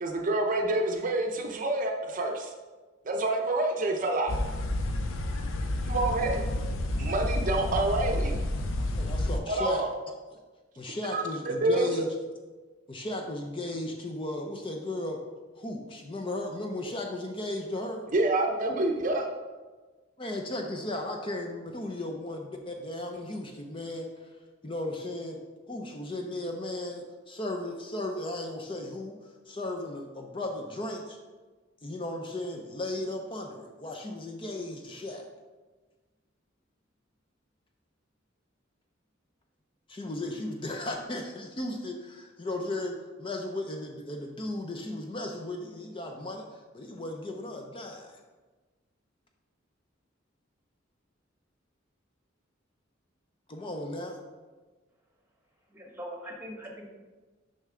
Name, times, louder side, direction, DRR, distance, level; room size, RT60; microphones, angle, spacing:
voice 1, 0.0-2.5 3.1-4.3 5.9-6.4 7.0-8.4 9.5-9.9 11.1-12.1 18.1-19.3, right 2 dB, 40° right, 2 dB, 0.6 m, -27 dB
sound 1, 4.3-9.4, left 1 dB, 85° left, 0.6 m, -30 dB
voice 2, 9.0-9.8 10.3-10.4 10.8-12.1 12.9-15.2 15.6-18.0 20.2-25.4 25.7-31.2 31.8-35.3 39.9-48.2 53.5-54.2, left 1 dB, 25° left, 3 dB, 0.5 m, -36 dB
voice 3, 55.7-56.8, equal, 10° right, 0 dB, 1.1 m, -41 dB
6.5 x 5.5 x 3.7 m, 1.3 s
head